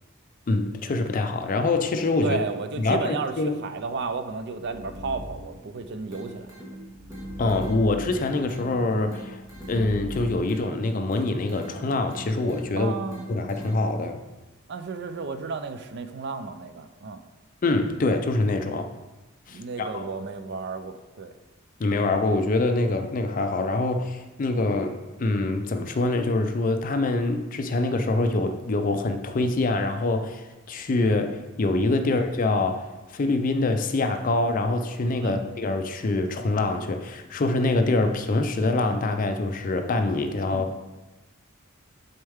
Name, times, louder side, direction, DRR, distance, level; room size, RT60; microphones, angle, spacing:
voice 1, 0.5-2.4 2.8-3.6 7.4-9.4 9.7-12.9 13.3-14.2 17.6-18.9 19.5-20.1 21.8-40.8, left 2 dB, 40° left, 7 dB, 0.4 m, -25 dB
voice 2, 2.2-6.5 12.8-13.4 14.7-17.2 19.5-21.3 32.0-32.1 35.2-35.4 40.5-40.8, right 4 dB, 55° right, 10 dB, 0.4 m, -33 dB
sound 1, 4.2-10.4, equal, 80° right, 1.6 m, -41 dB
sound 2, 6.1-14.1, right 1 dB, 15° right, 1.5 m, -44 dB
6.4 x 4.4 x 3.5 m, 1.1 s
head